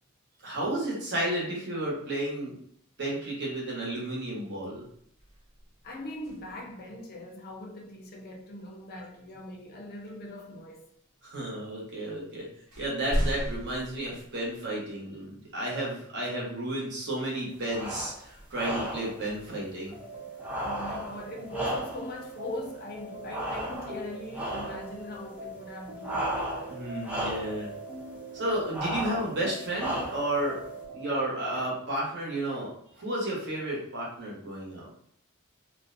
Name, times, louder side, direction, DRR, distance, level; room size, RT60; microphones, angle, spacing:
voice 1, 0.4-2.5 3.0-4.8 11.2-12.5 12.8-20.0 26.7-27.7 28.3-30.6 30.9-34.9, right 1 dB, 55° right, 0.9 m, -32 dB
sound 1, 4.8-6.8 9.0-9.2 10.0-10.7 11.6-11.7 12.1-15.0 15.5-15.6 18.2-20.4, equal, 80° right, 1.2 m, -37 dB
voice 2, 5.8-10.9 19.1-19.2 20.6-26.3, left 1 dB, 45° left, 0.5 m, -41 dB
sound 2, 17.7-18.2 18.5-19.2 20.4-22.2 23.3-24.0 24.3-24.9 26.0-26.8 27.0-27.6 28.7-29.3 29.8-30.4, right 1 dB, 5° right, 0.4 m, -34 dB
sound 3, 19.9-31.8, right 1 dB, 30° right, 0.8 m, -43 dB
2.6 x 2.1 x 2.5 m
head